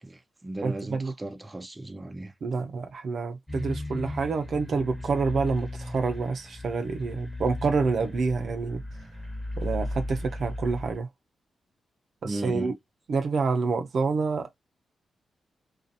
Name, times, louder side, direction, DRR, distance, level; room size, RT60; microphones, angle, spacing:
voice 1, 0.0-2.3 12.2-12.7, right 1 dB, 25° right, 0.6 m, -36 dB
voice 2, 0.6-1.1 2.4-8.8 9.6-11.1 12.2-12.7 13.1-14.5, right 4 dB, 65° right, 0.6 m, -28 dB
sound 1, 3.5-11.0, left 1 dB, 20° left, 1.2 m, -36 dB
2.5 x 2.5 x 2.6 m
supercardioid pair, 50°, 0 cm